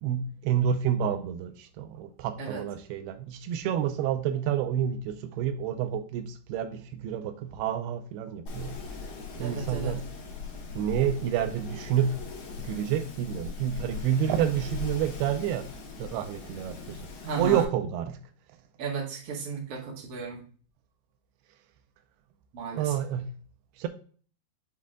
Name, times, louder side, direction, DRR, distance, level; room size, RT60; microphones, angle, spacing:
voice 1, 0.0-8.8 9.4-10.0 10.8-12.3 12.6-15.7 16.0-17.1 17.4-18.2 22.7-23.3 23.8-23.9, right 9 dB, 85° right, 2.5 m, -29 dB
Wind, 8.5-17.6, left 4 dB, 55° left, 2.8 m, -40 dB
voice 2, 9.4-10.0 17.2-17.6 18.8-20.4 22.5-22.9, right 5 dB, 45° right, 2.2 m, -34 dB
7.6 x 3.6 x 3.6 m
omnidirectional pair, 4.5 m